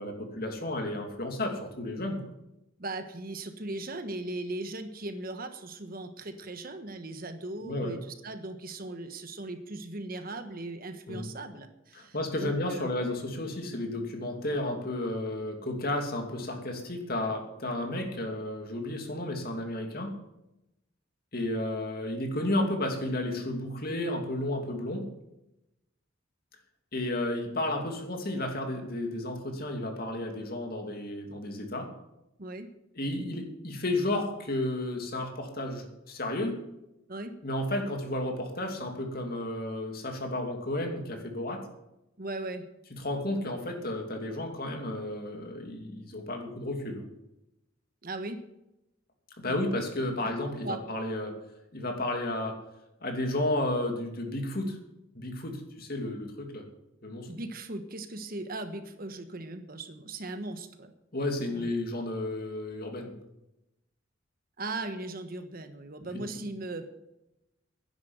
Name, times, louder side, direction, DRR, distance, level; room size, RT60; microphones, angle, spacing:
voice 1, 0.0-2.2 7.6-8.0 11.1-11.3 11.9-20.1 21.3-25.1 26.9-31.9 32.9-36.6 37.4-41.7 43.0-47.1 49.4-51.3 51.7-52.6 53.0-54.8 55.1-56.6 57.0-57.3 61.1-63.1, left 1 dB, 50° left, 3 dB, 2.7 m, -32 dB
voice 2, 2.8-12.9 32.4-32.7 37.1-37.3 42.2-42.6 48.0-48.4 49.4-49.8 50.2-50.3 50.6-50.8 57.3-60.9 61.5-61.7 64.6-66.9, right 2 dB, 45° right, 8 dB, 1.3 m, -38 dB
11.5 x 10.5 x 8.1 m, 0.90 s
head